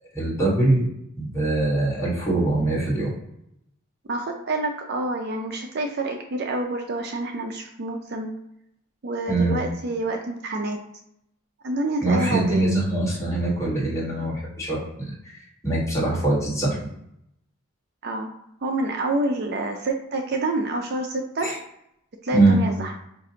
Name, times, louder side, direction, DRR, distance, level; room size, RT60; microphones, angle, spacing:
voice 1, 0.1-0.9 1.2-3.1 9.3-9.5 12.0-15.1 15.6-16.8 21.4-21.6 22.3-22.6, right 2 dB, 15° left, -7 dB, 1.4 m, -22 dB
voice 2, 4.1-8.3 9.0-10.8 11.6-12.6 18.0-18.3 18.6-21.5 22.2-22.9, right 2 dB, 50° right, 3 dB, 0.4 m, -27 dB
5.2 x 2.4 x 2.7 m, 0.77 s
head